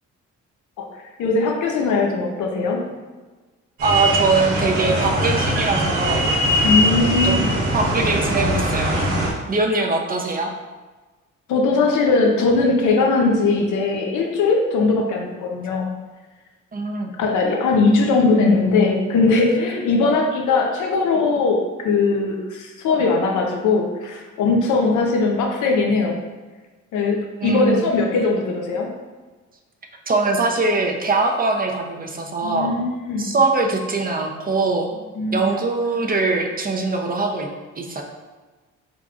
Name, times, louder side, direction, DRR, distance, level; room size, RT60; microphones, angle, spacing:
voice 1, 0.8-2.8 6.6-7.5 11.5-15.9 17.2-26.2 26.9-28.9 32.4-33.3 35.2-35.4, left 3 dB, 80° left, 1 dB, 0.7 m, -20 dB
voice 2, 3.8-6.3 7.0-7.4 7.7-8.9 9.5-10.5 16.7-17.1 27.4-27.8 30.1-32.7 33.2-34.9 35.3-37.5 37.8-38.0, right 3 dB, 30° right, 2 dB, 0.6 m, -22 dB
sound 1, 3.8-9.3, equal, 65° right, 1.2 m, -21 dB
4.5 x 3.9 x 2.4 m, 1.3 s
cardioid pair, 90°, 30 cm